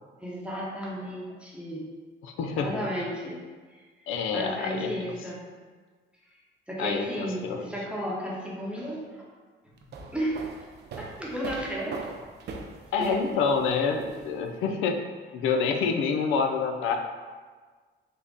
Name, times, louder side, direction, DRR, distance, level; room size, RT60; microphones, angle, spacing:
voice 1, 0.2-1.9 2.5-3.4 3.7-3.8 4.3-5.4 6.7-9.3 10.1-10.7 11.0-12.0 13.0-13.3, equal, 5° right, -5 dB, 0.8 m, -33 dB
voice 2, 2.2-2.8 4.1-4.9 6.8-7.7 12.9-15.0 15.3-17.0, left 5 dB, 85° left, 4 dB, 0.4 m, -27 dB
sound 1, 9.8-14.6, right 4 dB, 55° right, 0.5 m, -41 dB
3.5 x 2.1 x 3.7 m, 1.5 s
cardioid pair, 90°, 20 cm